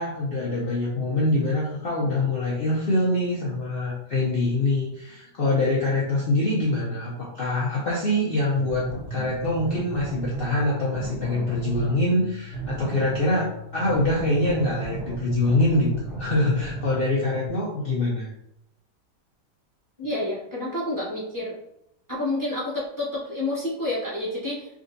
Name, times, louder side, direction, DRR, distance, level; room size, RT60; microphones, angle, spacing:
voice 1, 0.0-13.5 13.7-15.9 16.2-18.3, left 2 dB, 90° left, -5 dB, 0.5 m, -24 dB
sound 1, 8.5-17.5, right 2 dB, 50° right, 0.7 m, -35 dB
voice 2, 20.0-21.5 22.1-24.7, left 1 dB, 15° right, -7 dB, 0.8 m, -29 dB
3.7 x 2.5 x 2.6 m, 0.80 s
omnidirectional pair, 1.8 m